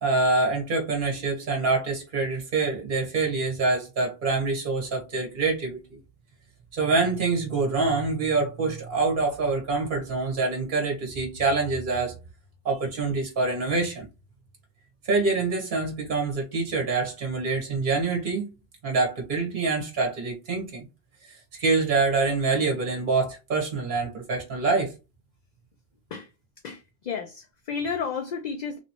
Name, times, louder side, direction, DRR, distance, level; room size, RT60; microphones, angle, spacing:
voice 1, 0.0-5.8 6.7-12.1 12.6-14.1 15.0-18.5 18.8-20.9 21.5-24.9, right 3 dB, 55° right, 1.3 m, -25 dB
voice 2, 26.6-28.8, left 6 dB, 55° left, 0.5 m, -32 dB
3.2 x 3.0 x 2.8 m
omnidirectional pair, 1.0 m